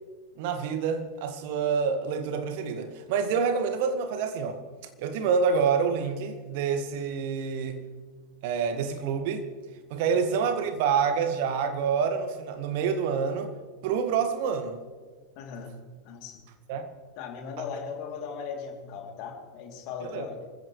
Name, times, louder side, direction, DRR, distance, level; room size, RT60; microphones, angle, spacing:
voice 1, 0.4-4.6 5.0-7.8 8.4-9.5 9.9-13.5 13.8-14.8 16.7-16.9 20.0-20.3, right 6 dB, 50° right, 7 dB, 2.0 m, -27 dB
voice 2, 15.3-15.8 16.0-16.5 17.2-20.5, left 6 dB, 45° left, 2 dB, 3.3 m, -38 dB
27.5 x 15.5 x 3.4 m, 1.5 s
figure-of-eight pair, 90°, 0 cm